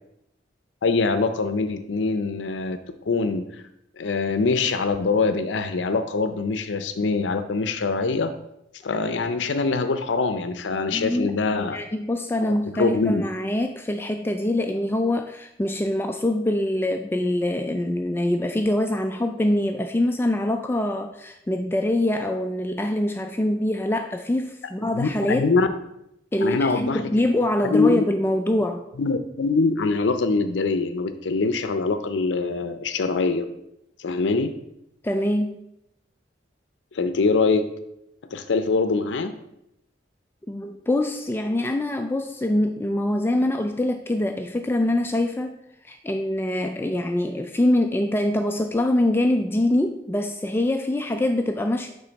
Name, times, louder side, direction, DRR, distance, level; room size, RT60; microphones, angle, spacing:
voice 1, 0.8-2.8 3.1-3.4 4.0-8.3 8.8-11.8 12.4-13.2 24.9-25.7 26.4-27.1 27.6-28.0 29.0-33.4 34.0-34.5 36.9-37.7 38.3-39.3, left 4 dB, 80° left, 9 dB, 0.5 m, -23 dB
voice 2, 10.9-11.3 11.6-25.5 26.3-28.8 35.0-35.6 40.5-45.6 45.8-51.9, left 1 dB, 15° left, 5 dB, 0.3 m, -24 dB
9.1 x 3.8 x 4.0 m, 0.82 s
head